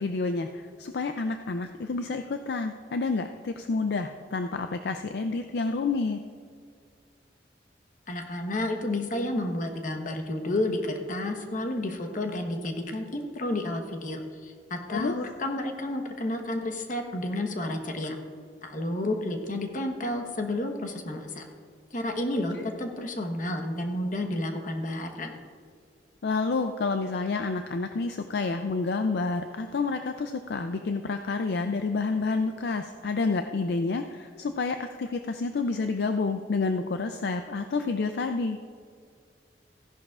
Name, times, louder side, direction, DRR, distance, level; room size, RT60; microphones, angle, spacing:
voice 1, 0.0-6.2 14.9-15.2 22.6-22.7 26.2-38.6, left 3 dB, 65° left, 7 dB, 0.4 m, -29 dB
voice 2, 8.1-18.2 18.6-21.5 21.9-25.3, left 1 dB, 50° left, 4 dB, 1.1 m, -31 dB
15.0 x 11.0 x 2.4 m, 2.1 s
head